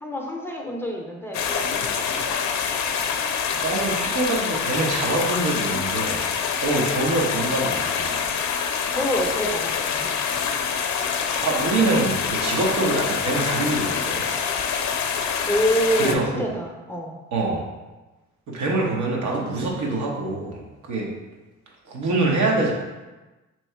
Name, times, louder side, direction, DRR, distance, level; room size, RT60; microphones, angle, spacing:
voice 1, 0.0-2.4 8.9-10.1 15.5-17.1, equal, 10° left, -1 dB, 0.6 m, -27 dB
sound 1, 1.3-16.1, left 6 dB, 65° left, 0.5 m, -26 dB
voice 2, 3.5-6.3 6.6-8.4 11.4-14.2 16.0-16.5 17.3-17.6 18.5-20.6 20.9-21.1 21.9-22.7, right 2 dB, 75° right, -1 dB, 1.0 m, -25 dB
3.0 x 2.8 x 4.4 m, 1.1 s
cardioid pair, 90°, 30 cm